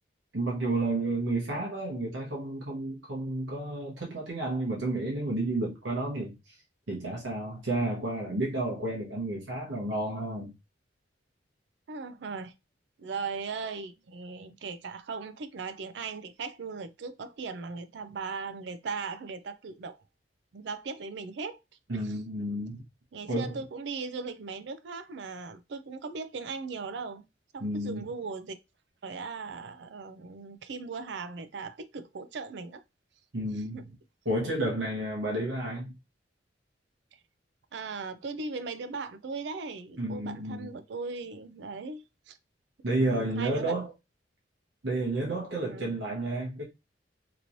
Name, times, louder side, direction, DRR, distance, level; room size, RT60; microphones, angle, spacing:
voice 1, 0.3-6.5 6.9-10.5 21.9-22.8 23.3-23.6 27.6-28.0 33.3-33.9 34.2-35.9 40.0-40.7 42.8-43.9 44.8-46.6, right 2 dB, 90° right, 1.0 m, -31 dB
voice 2, 11.9-12.5 13.0-20.0 20.5-21.6 22.0-22.2 23.1-27.3 27.5-28.5 29.0-32.8 33.7-33.8 37.7-42.4 43.0-43.7 45.7-46.0, right 4 dB, 70° right, 0.4 m, -38 dB
3.0 x 2.9 x 2.6 m
head